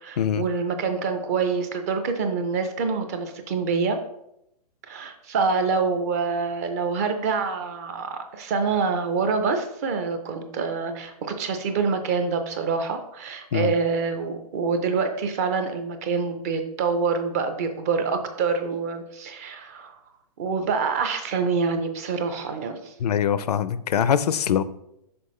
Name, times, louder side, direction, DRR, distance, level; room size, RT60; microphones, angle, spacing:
voice 1, 0.0-4.0 4.9-20.0 20.4-22.9, right 5 dB, 25° right, 7 dB, 0.4 m, -26 dB
voice 2, 23.0-24.6, left 8 dB, 75° left, 15 dB, 0.5 m, -23 dB
5.9 x 5.5 x 3.1 m, 0.81 s
hypercardioid pair, 160°, 20 cm